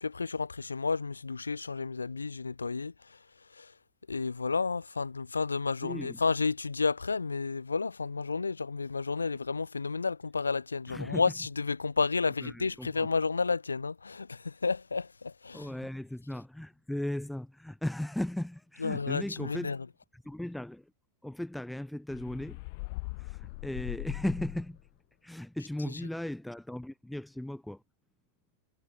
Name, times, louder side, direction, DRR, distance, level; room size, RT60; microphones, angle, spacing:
voice 1, 0.0-2.9 3.6-3.7 4.1-15.6 18.8-19.8, left 4 dB, 75° left, 3.4 m, -31 dB
voice 2, 5.8-6.2 10.9-11.3 12.4-13.1 15.5-19.8 20.1-20.9 21.2-22.6 23.2-24.8 25.2-27.8, left 1 dB, 5° left, 4.9 m, -37 dB
sound 1, 22.1-24.9, left 27 dB, 45° left, 1.8 m, -40 dB
figure-of-eight pair, 90°, 0 cm